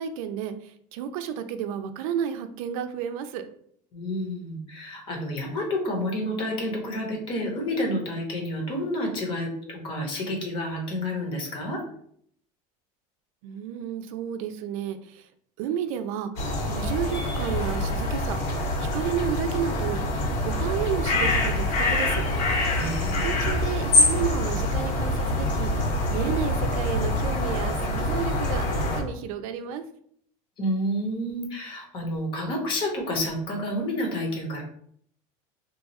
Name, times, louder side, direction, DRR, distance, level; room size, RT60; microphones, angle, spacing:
voice 1, 0.0-3.5 13.4-15.3 15.6-18.4 18.8-20.0 20.4-22.2 23.2-29.8, right 8 dB, 80° right, 9 dB, 0.4 m, -32 dB
voice 2, 3.9-11.8 22.7-23.4 30.6-34.6, left 1 dB, 30° left, 1 dB, 0.8 m, -29 dB
sound 1, 16.4-29.0, left 2 dB, 65° left, 1.5 m, -25 dB
2.8 x 2.3 x 4.0 m, 0.65 s
cardioid pair, 180°, 17 cm